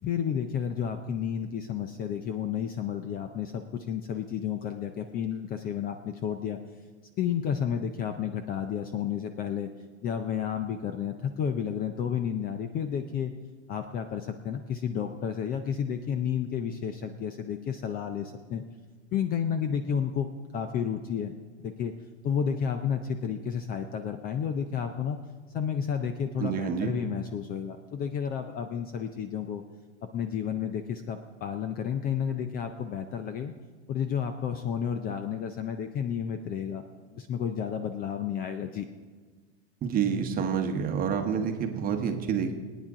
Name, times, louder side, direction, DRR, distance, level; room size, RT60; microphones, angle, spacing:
voice 1, 0.0-6.6 7.2-9.7 10.0-13.3 13.7-18.6 19.1-21.3 21.6-21.9 22.2-25.2 25.5-29.6 30.1-33.5 33.9-36.8 37.1-38.9, left 8 dB, 25° left, 8 dB, 0.5 m, -31 dB
voice 2, 26.4-27.0 39.8-42.5, right 7 dB, 25° right, 5 dB, 1.2 m, -28 dB
24.0 x 9.2 x 3.7 m, 1.5 s
supercardioid pair, 145°, 35 cm